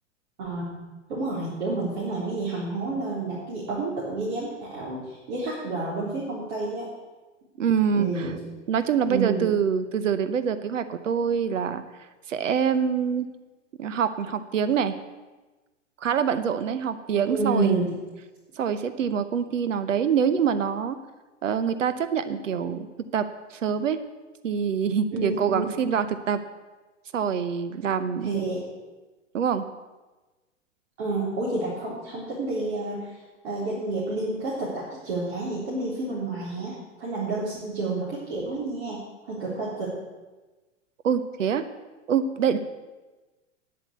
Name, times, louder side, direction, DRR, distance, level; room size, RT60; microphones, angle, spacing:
voice 1, 0.4-6.9 7.9-8.4 9.1-9.6 17.3-18.0 25.1-25.9 28.2-28.6 31.0-33.2 33.4-39.9, right 3 dB, 60° right, -6 dB, 3.7 m, -29 dB
voice 2, 7.6-8.3 8.7-11.8 12.3-13.3 13.8-14.9 16.0-17.7 18.6-21.0 21.4-22.9 23.1-24.0 24.4-26.4 27.1-28.3 29.3-29.7 41.0-41.6 42.1-42.6, right 7 dB, 80° right, 12 dB, 0.9 m, -25 dB
9.8 x 8.0 x 8.3 m, 1.2 s
hypercardioid pair, 100°, 37 cm